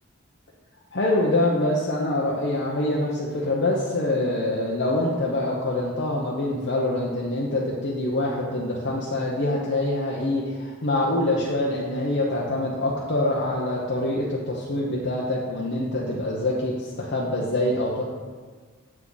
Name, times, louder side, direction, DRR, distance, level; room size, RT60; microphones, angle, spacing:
voice 1, 0.9-18.0, left 1 dB, 55° left, -4 dB, 0.9 m, -25 dB
7.8 x 5.9 x 4.0 m, 1.5 s
head